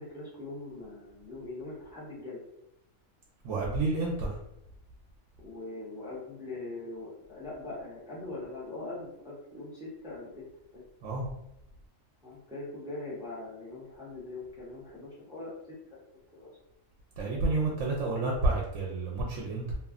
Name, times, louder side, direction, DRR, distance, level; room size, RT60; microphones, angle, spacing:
voice 1, 0.0-2.4 5.4-10.4 10.7-10.8 12.2-15.5 15.9-16.5, left 2 dB, 5° right, -8 dB, 0.7 m, -42 dB
voice 2, 3.4-4.4 11.0-11.3 17.2-19.7, right 2 dB, 70° right, -3 dB, 0.9 m, -30 dB
2.8 x 2.4 x 2.4 m, 0.82 s
omnidirectional pair, 1.4 m